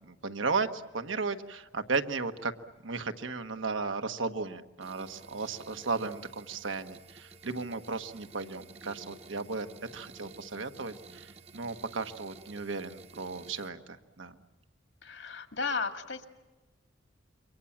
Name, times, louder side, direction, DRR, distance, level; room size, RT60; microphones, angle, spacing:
voice 1, 0.0-2.5 2.8-9.7 9.9-14.4, right 4 dB, 85° right, 8 dB, 1.4 m, -35 dB
sound 1, 4.8-13.7, right 3 dB, 30° right, 0.8 m, -52 dB
voice 2, 15.0-16.3, left 4 dB, 75° left, 8 dB, 2.1 m, -34 dB
28.0 x 23.5 x 7.3 m, 1.2 s
head